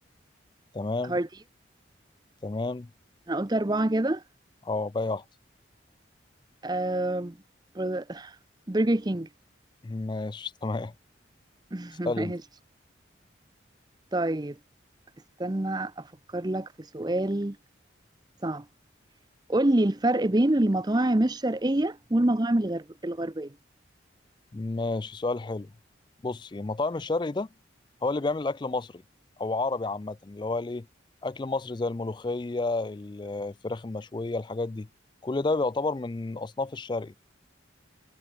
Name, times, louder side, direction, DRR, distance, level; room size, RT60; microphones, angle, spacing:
voice 1, 0.7-1.2 2.4-2.9 4.6-5.2 9.8-10.9 12.0-12.3 24.5-25.7 26.2-27.5 28.0-29.0 29.4-30.9 31.2-34.9 35.2-37.1, left 3 dB, 25° left, 0.3 m, -30 dB
voice 2, 3.3-4.2 6.6-7.4 7.7-8.4 8.7-9.3 11.7-12.4 14.1-14.6 15.4-16.1 16.3-17.6 18.4-18.6 19.5-23.5, right 1 dB, 20° right, 0.7 m, -26 dB
head